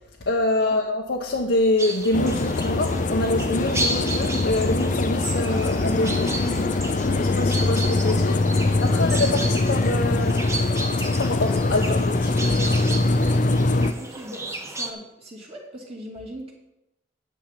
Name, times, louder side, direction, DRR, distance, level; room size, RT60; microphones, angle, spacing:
voice 1, 0.2-6.4 7.2-10.5 11.2-12.7, left 2 dB, 80° left, 0 dB, 1.0 m, -26 dB
sound 1, 1.8-14.9, right 2 dB, 15° right, 1.1 m, -34 dB
sound 2, 2.1-13.9, left 2 dB, 45° left, 0.6 m, -22 dB
voice 2, 7.0-7.5 8.8-9.3 13.1-16.5, equal, 35° right, -2 dB, 2.4 m, -40 dB
10.0 x 7.5 x 5.8 m, 0.89 s
head